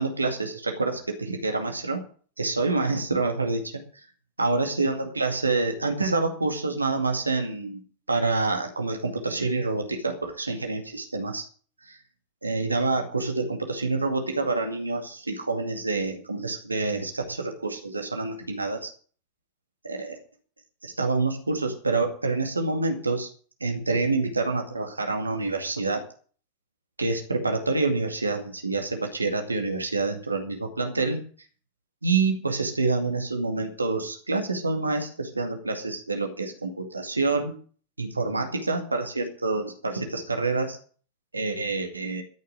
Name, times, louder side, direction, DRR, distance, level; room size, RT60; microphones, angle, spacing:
voice 1, 0.0-2.0 2.4-4.1 4.4-7.8 8.1-11.4 11.9-12.0 12.4-18.9 19.8-20.2 20.8-23.3 23.6-26.0 27.0-31.2 32.0-37.6 38.0-40.8 41.3-42.2, right 3 dB, 80° right, 4 dB, 2.2 m, -27 dB
13.5 x 6.7 x 9.0 m, 0.43 s
figure-of-eight pair, 90°, 0 cm